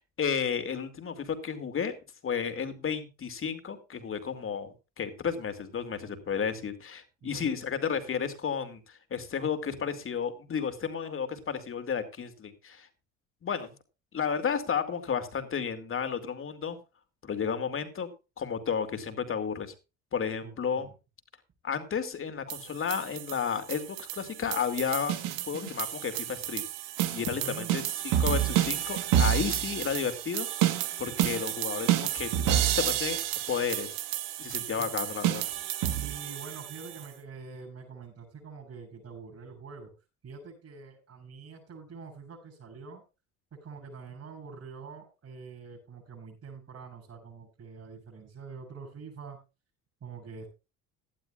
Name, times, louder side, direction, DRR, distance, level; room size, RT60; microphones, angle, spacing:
voice 1, 0.0-1.9 2.2-12.9 13.4-13.7 14.1-16.8 17.2-18.1 18.4-19.7 20.1-20.9 21.6-26.6 27.1-30.5 31.0-33.2 33.5-33.9 34.4-35.4, left 7 dB, 40° left, 8 dB, 2.7 m, -32 dB
voice 2, 7.2-7.6 20.4-20.9 27.2-27.7 34.8-34.9 35.9-39.9 40.2-43.0 43.6-49.4 50.0-50.5, right 5 dB, 45° right, -4 dB, 8.0 m, -45 dB
sound 1, 22.5-37.1, right 12 dB, 80° right, 1.5 m, -30 dB
18.0 x 12.0 x 2.5 m, 0.29 s
supercardioid pair, 75°, 33 cm